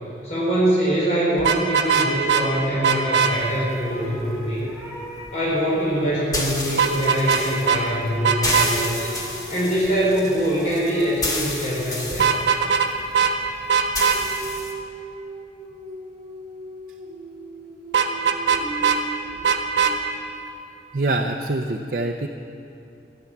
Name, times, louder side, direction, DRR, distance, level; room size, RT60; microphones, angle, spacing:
voice 1, 0.2-4.6 5.3-9.1 9.5-12.3, equal, 40° left, -6 dB, 4.0 m, -23 dB
Vehicle horn car horn honking, 1.4-2.4 2.8-3.3 6.8-7.4 7.7-7.8 8.2-8.7 12.1-12.9 13.1-13.3 13.7-14.2 17.9-19.0 19.4-19.9, right 7 dB, 80° right, 1.0 m, -19 dB
sound 1, 3.3-14.7, left 1 dB, 20° left, 1.3 m, -32 dB
sound 2, 3.9-6.8 7.9-12.7 14.1-20.2, right 1 dB, 15° right, 3.9 m, -39 dB
voice 2, 20.9-22.3, right 2 dB, 50° right, 3 dB, 0.5 m, -24 dB
14.0 x 10.0 x 7.2 m, 2.7 s
head